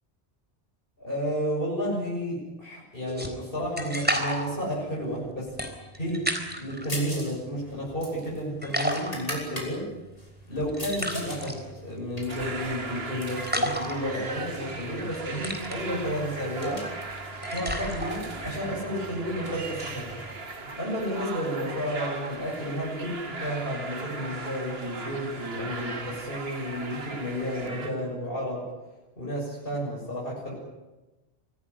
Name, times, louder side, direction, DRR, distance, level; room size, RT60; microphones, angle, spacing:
voice 1, 1.0-5.5 5.9-9.9 10.5-16.8 17.5-20.2 20.6-28.6 29.2-30.5, equal, 60° left, -4 dB, 7.4 m, -32 dB
sound 1, 3.1-6.9 7.3-8.3 8.6-20.4, equal, 10° right, 3.9 m, -34 dB
sound 2, 6.9-7.4 7.6-9.7 10.2-11.4 11.8-13.5 14.1-14.7 15.0-15.1 15.4-18.5, equal, 35° left, 6.1 m, -40 dB
sound 3, 12.3-27.9, right 3 dB, 70° right, 2.2 m, -38 dB
25.5 x 17.5 x 10.0 m, 1.1 s
omnidirectional pair, 1.1 m